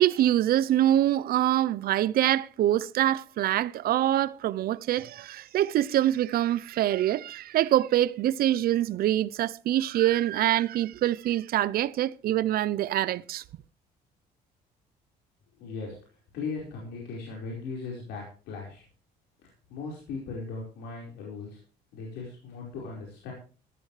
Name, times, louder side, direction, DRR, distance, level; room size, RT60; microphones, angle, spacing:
voice 1, 0.0-13.4, right 13 dB, 60° right, 0.6 m, -25 dB
voice 2, 15.6-16.0 16.3-18.8 19.7-21.6 21.9-23.3, left 4 dB, 85° left, 4.9 m, -38 dB
14.5 x 14.0 x 3.3 m
cardioid pair, 110°, 17 cm